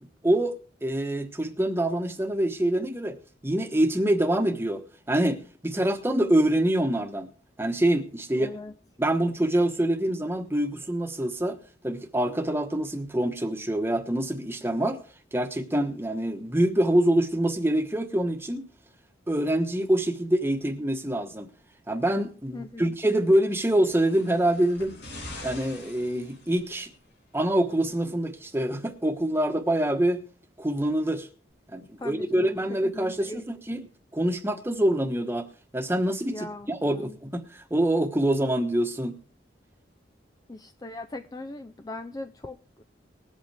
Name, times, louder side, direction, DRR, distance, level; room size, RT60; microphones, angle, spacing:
voice 1, 0.2-0.5 0.8-3.2 3.4-4.8 5.1-7.3 7.6-8.5 9.0-11.6 11.8-15.0 15.3-18.6 19.3-21.5 21.9-24.9 25.4-26.9 27.3-30.2 30.6-31.3 31.7-33.9 34.1-35.5 35.7-39.2, right 1 dB, 15° right, 1.2 m, -25 dB
voice 2, 8.4-8.7 22.5-22.8 32.0-33.8 36.3-37.2 40.5-42.8, left 2 dB, 20° left, 0.5 m, -40 dB
sound 1, 23.6-26.9 27.9-28.0, left 1 dB, 65° left, 3.5 m, -44 dB
20.5 x 8.1 x 3.4 m
head